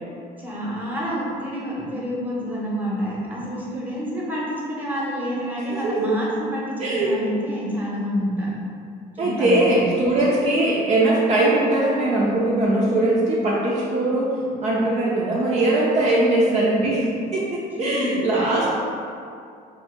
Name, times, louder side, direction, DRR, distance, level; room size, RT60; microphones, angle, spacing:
voice 1, 0.4-8.5 9.1-9.7 16.3-16.7 17.8-18.7, equal, 10° right, -5 dB, 0.8 m, -28 dB
voice 2, 5.6-6.0 6.8-7.1 9.2-17.0 17.3-18.7, right 2 dB, 40° right, -6 dB, 0.5 m, -21 dB
2.6 x 2.6 x 3.7 m, 2.4 s
cardioid pair, 110°, 17 cm